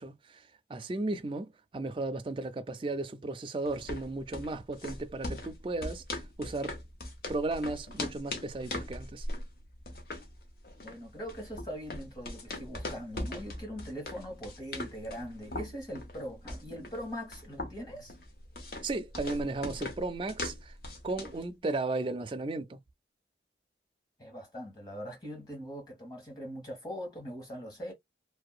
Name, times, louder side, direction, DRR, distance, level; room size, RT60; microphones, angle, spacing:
voice 1, 0.0-6.8 7.3-9.3 18.8-20.7 21.0-22.8, right 2 dB, 30° right, 0.4 m, -35 dB
sound 1, 3.7-21.5, left 1 dB, 55° left, 0.7 m, -41 dB
voice 2, 10.8-18.1 24.2-27.9, equal, 25° left, 1.3 m, -41 dB
2.7 x 2.1 x 2.4 m
head